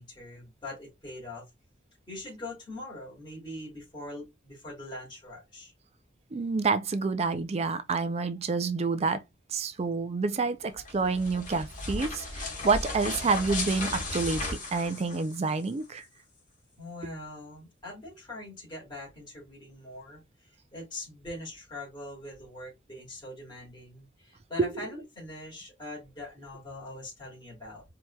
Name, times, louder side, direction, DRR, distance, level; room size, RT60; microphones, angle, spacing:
voice 1, 0.0-1.5 2.1-5.7 16.8-27.8, left 1 dB, 25° left, 2.6 m, -42 dB
voice 2, 6.3-9.2 9.5-16.0 24.7-24.9, right 4 dB, 35° right, 0.4 m, -28 dB
sound 1, 10.7-15.7, left 2 dB, 45° left, 1.4 m, -35 dB
4.4 x 2.9 x 2.3 m
head